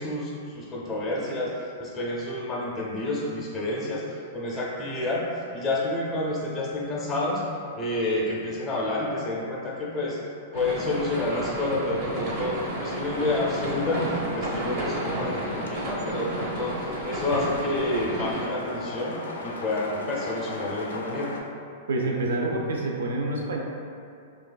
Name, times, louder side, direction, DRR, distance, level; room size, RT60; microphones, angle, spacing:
voice 1, 0.0-4.0 4.3-5.3 5.5-7.4 7.8-10.2 10.5-19.2 19.4-21.3, left 2 dB, 20° left, -5 dB, 0.6 m, -29 dB
sound 1, 10.5-18.5, right 1 dB, 50° right, 0.7 m, -32 dB
sound 2, 12.4-21.4, left 2 dB, 90° left, 0.4 m, -37 dB
voice 2, 21.9-23.6, right 2 dB, 85° right, 0 dB, 0.4 m, -27 dB
3.1 x 2.4 x 2.2 m, 2.5 s
hypercardioid pair, 140°, 0 cm